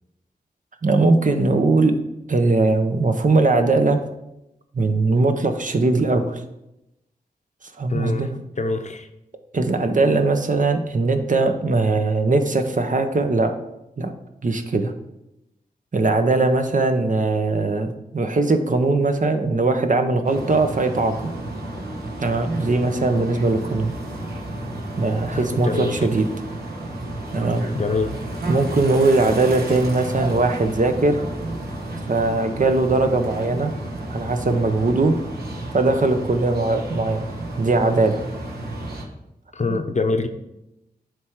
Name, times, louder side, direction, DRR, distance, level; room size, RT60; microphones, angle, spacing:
voice 1, 0.8-1.9 2.3-4.0 4.7-6.4 7.8-8.3 9.5-13.5 14.0-14.1 14.4-14.9 15.9-21.1 22.2-23.9 25.0-26.3 27.3-27.6 28.5-31.2 32.1-33.7 34.1-35.1 35.7-37.3 37.6-38.2 39.7-39.8, right 3 dB, 55° right, 6 dB, 0.8 m, -20 dB
voice 2, 7.9-8.3 8.6-9.1 25.3-25.9 27.7-28.1 39.5-40.3, left 3 dB, 45° left, 7 dB, 0.7 m, -24 dB
sound 1, 20.2-39.0, right 1 dB, 75° right, 1.3 m, -32 dB
9.3 x 3.3 x 4.6 m, 0.88 s
cardioid pair, 50°, 16 cm